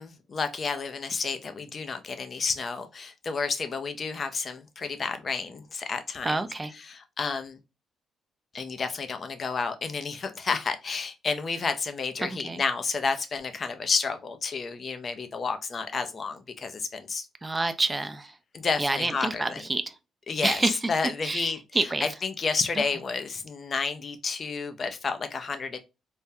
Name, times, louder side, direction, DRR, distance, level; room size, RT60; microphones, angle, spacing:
voice 1, 0.0-6.4 6.7-7.6 8.5-17.3 18.5-19.7 20.3-25.8, left 4 dB, 40° left, 0.5 m, -31 dB
voice 2, 6.2-6.7 12.2-12.6 17.4-18.3 18.8-19.9 20.4-20.8 21.2-22.1, right 2 dB, 20° right, 0.3 m, -28 dB
3.4 x 2.2 x 2.6 m
cardioid pair, 90°, 0 cm